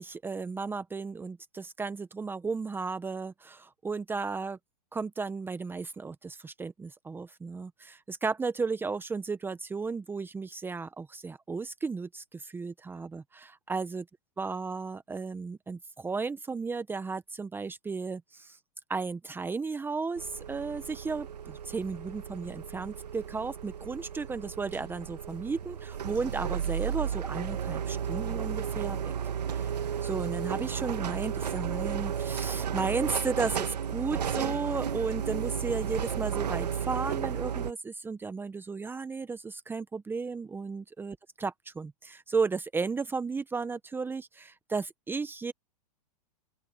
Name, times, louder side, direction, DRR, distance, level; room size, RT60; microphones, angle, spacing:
voice 1, 0.0-4.6 4.9-14.0 14.4-18.6 18.9-29.0 29.5-41.5 41.8-45.5, right 4 dB, 10° right, 1.1 m, -34 dB
sound 1, 20.2-37.7, right 8 dB, 90° right, 2.1 m, -33 dB
open air
hypercardioid pair, 125°, 20 cm